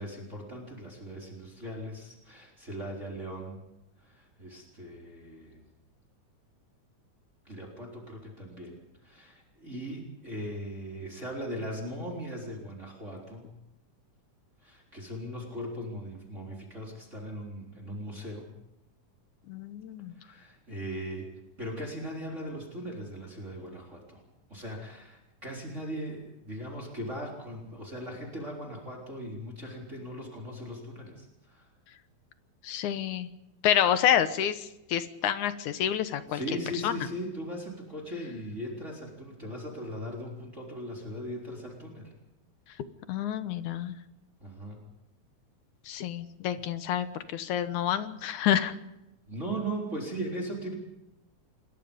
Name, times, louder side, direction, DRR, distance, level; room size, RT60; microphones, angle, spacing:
voice 1, 0.0-3.6 4.0-5.6 7.4-13.5 14.6-18.5 20.2-21.3 21.6-24.2 24.5-31.7 36.3-42.1 44.4-44.8 49.3-50.7, equal, 25° right, -1 dB, 4.1 m, -39 dB
voice 2, 19.5-20.2 32.6-33.3 33.6-36.4 36.8-37.1 43.1-43.9 45.9-48.7, left 10 dB, 85° left, 11 dB, 2.6 m, -28 dB
27.0 x 22.0 x 5.3 m, 0.92 s
omnidirectional pair, 3.4 m